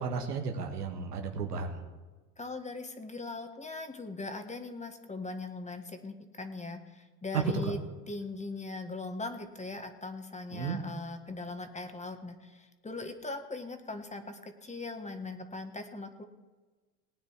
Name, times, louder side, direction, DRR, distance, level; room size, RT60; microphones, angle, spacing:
voice 1, 0.0-1.8 7.6-7.7 10.5-10.8, right 5 dB, 85° right, 4 dB, 1.7 m, -34 dB
voice 2, 2.4-7.8 8.1-16.2, left 3 dB, 15° left, 7 dB, 1.7 m, -40 dB
19.0 x 9.3 x 4.7 m, 1.3 s
hypercardioid pair, 75°, 46 cm